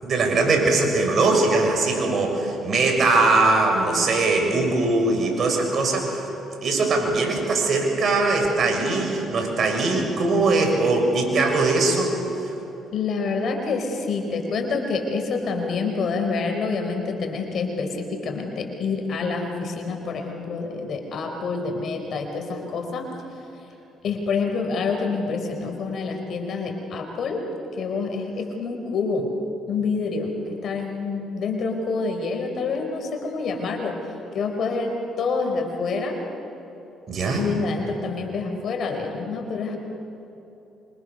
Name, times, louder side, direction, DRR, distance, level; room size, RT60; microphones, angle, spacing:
voice 1, 0.0-6.3 6.6-12.1 37.1-37.4, right 3 dB, 55° right, 2 dB, 6.7 m, -21 dB
voice 2, 12.9-23.0 24.0-27.4 27.8-29.3 29.7-34.0 34.3-36.2 37.3-39.8, left 4 dB, 60° left, 4 dB, 4.6 m, -27 dB
26.5 x 25.5 x 6.8 m, 3.0 s
supercardioid pair, 60°, 0 cm